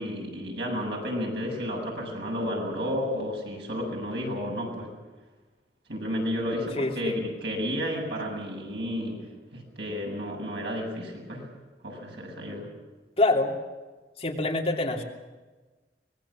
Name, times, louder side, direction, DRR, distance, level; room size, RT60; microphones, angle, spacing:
voice 1, 0.0-4.9 5.9-9.2 9.5-11.4 11.8-12.7, equal, 75° right, 0 dB, 7.7 m, -32 dB
voice 2, 6.8-7.1 13.2-13.5 14.2-15.0, left 2 dB, 35° left, 0 dB, 3.0 m, -25 dB
25.0 x 20.0 x 7.4 m, 1.3 s
head